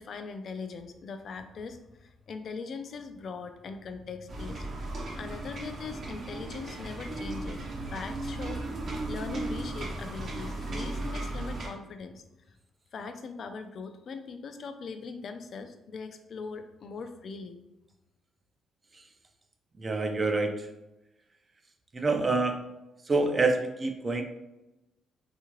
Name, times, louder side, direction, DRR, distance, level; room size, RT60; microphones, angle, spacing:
voice 1, 0.0-4.7 5.1-7.6 7.9-8.6 9.1-12.2 12.9-17.6, left 4 dB, 55° left, 8 dB, 0.3 m, -40 dB
sound 1, 4.3-11.7, right 2 dB, 55° right, 0.8 m, -36 dB
voice 2, 19.8-20.7 21.9-22.6 23.0-24.2, right 3 dB, 30° right, 5 dB, 0.4 m, -27 dB
2.7 x 2.4 x 2.9 m, 0.95 s
cardioid pair, 90°, 0 cm